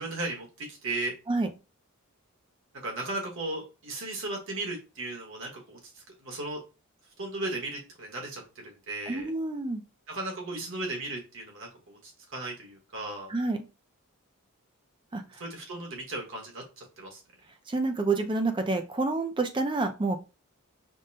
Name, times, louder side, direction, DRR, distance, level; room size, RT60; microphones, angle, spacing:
voice 1, 0.0-1.1 2.8-6.6 7.2-9.3 10.1-13.3 15.4-17.2, right 2 dB, 60° right, 1 dB, 1.3 m, -36 dB
voice 2, 9.1-9.8 13.3-13.6 15.1-15.4 17.7-20.2, right 3 dB, 20° right, 7 dB, 0.4 m, -28 dB
5.2 x 2.2 x 2.6 m, 0.30 s
head